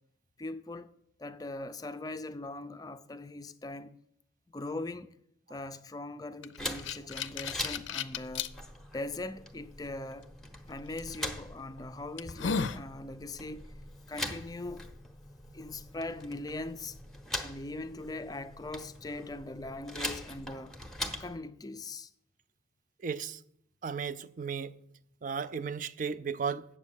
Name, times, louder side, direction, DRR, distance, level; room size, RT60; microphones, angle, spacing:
voice 1, 0.4-0.9 1.2-4.0 4.5-5.2 5.5-8.5 8.9-10.3 10.7-13.7 14.1-14.9 15.5-17.0 17.4-20.8 21.2-22.1, left 2 dB, 20° left, 0.4 m, -40 dB
sound 1, 6.4-8.5 9.1-9.2 11.0-11.2 11.7-11.8 12.2-12.8, left 5 dB, 80° left, 0.5 m, -34 dB
sound 2, 6.6-21.4, left 1 dB, ahead, 0.8 m, -42 dB
voice 2, 23.0-23.4 23.8-24.8 25.2-26.7, right 6 dB, 45° right, 0.4 m, -35 dB
8.4 x 7.2 x 7.0 m
head